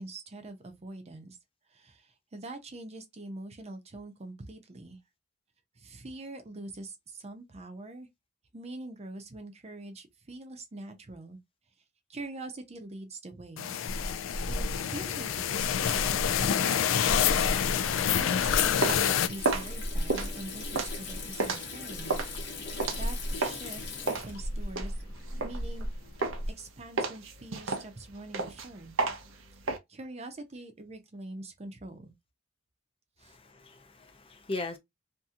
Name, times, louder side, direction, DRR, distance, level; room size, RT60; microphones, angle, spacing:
voice 1, 0.0-1.4 1.7-5.0 5.8-8.1 8.5-11.4 12.1-13.8 14.5-17.5 17.8-22.2 22.7-24.9 25.4-25.9 26.6-29.0 29.7-32.1 33.2-33.3, right 2 dB, 35° right, 0.6 m, -44 dB
sound 1, 13.6-19.3, left 9 dB, 85° left, 0.4 m, -27 dB
Water tap faucet / Sink (filling or washing), 13.9-26.5, left 1 dB, 65° left, 0.9 m, -36 dB
sound 2, 18.5-23.7 24.1-25.9 26.2-26.6 27.0-29.8, right 3 dB, 90° right, 0.6 m, -32 dB
voice 2, 33.3-34.8, left 2 dB, 30° left, 0.5 m, -38 dB
2.8 x 2.6 x 2.4 m
head